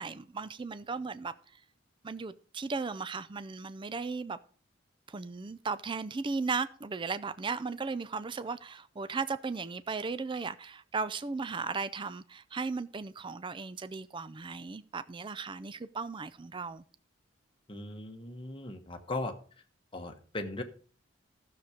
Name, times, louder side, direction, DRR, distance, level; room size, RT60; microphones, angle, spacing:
voice 1, 0.0-1.3 2.0-4.4 5.1-16.8, right 4 dB, 25° right, 0.4 m, -36 dB
voice 2, 17.7-19.3 19.9-20.6, left 2 dB, 25° left, 1.3 m, -38 dB
13.0 x 6.8 x 5.0 m
head